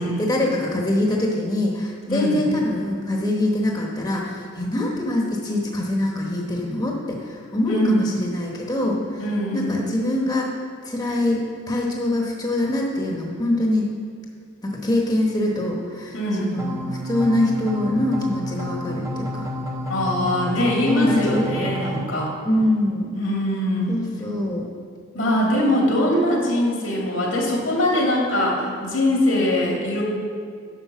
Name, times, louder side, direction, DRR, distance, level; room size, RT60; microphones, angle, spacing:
voice 1, 0.0-9.2 9.5-10.6 10.8-13.9 14.6-16.1 16.4-19.5 20.7-21.5 22.4-23.1 23.9-24.7 26.1-26.2, left 1 dB, 20° left, -1 dB, 1.1 m, -24 dB
voice 2, 2.1-2.4 7.7-8.0 9.2-9.7 16.1-16.6 19.9-22.3 23.1-24.0 25.1-30.0, left 1 dB, 80° left, -2 dB, 2.7 m, -22 dB
sound 1, 16.6-22.1, equal, 15° right, 0.8 m, -30 dB
10.0 x 6.6 x 6.0 m, 2.2 s
head